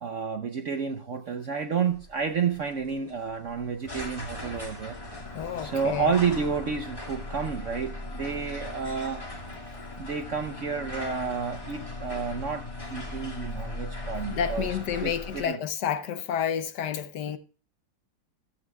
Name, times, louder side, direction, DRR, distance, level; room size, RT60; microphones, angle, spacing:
voice 1, 0.0-5.0 5.6-9.2 10.0-14.7 15.0-15.1 15.5-15.6, right 6 dB, 60° right, 0.8 m, -30 dB
sound 1, 1.8-15.4, left 2 dB, 15° left, 2.0 m, -38 dB
sound 2, 3.0-9.5, left 5 dB, 35° left, 1.1 m, -49 dB
voice 2, 5.3-6.1 14.3-17.4, left 8 dB, 70° left, 1.2 m, -30 dB
14.5 x 14.0 x 2.3 m
omnidirectional pair, 2.1 m